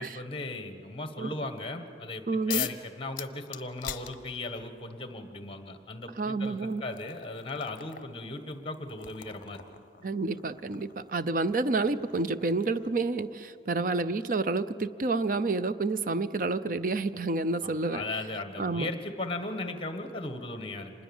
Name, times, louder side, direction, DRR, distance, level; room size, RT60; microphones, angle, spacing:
voice 1, 0.0-9.6 17.6-20.9, left 2 dB, 30° left, 8 dB, 1.5 m, -37 dB
voice 2, 2.3-2.7 6.2-6.8 10.0-18.0 18.6-18.9, right 3 dB, 45° right, 13 dB, 0.5 m, -29 dB
sound 1, 2.5-2.8 3.2-4.7 5.8-5.9 6.4-13.1, left 12 dB, 50° left, 0.9 m, -42 dB
26.0 x 20.5 x 7.2 m, 2.6 s
head